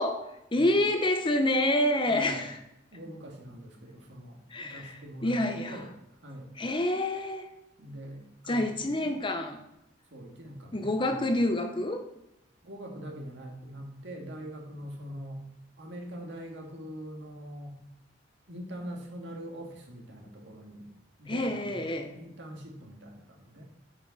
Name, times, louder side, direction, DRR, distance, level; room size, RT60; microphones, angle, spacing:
voice 1, 0.0-2.6 4.5-5.8 6.6-7.5 8.5-9.6 10.7-12.1 21.3-22.1, left 1 dB, 25° left, 7 dB, 0.7 m, -28 dB
voice 2, 2.1-2.4 2.9-5.4 5.7-5.9 6.2-6.6 7.8-9.1 10.1-11.2 12.6-15.4 15.8-17.8 18.5-20.9 21.2-23.6, equal, 75° right, 1 dB, 1.7 m, -43 dB
8.7 x 5.0 x 4.1 m, 0.86 s
head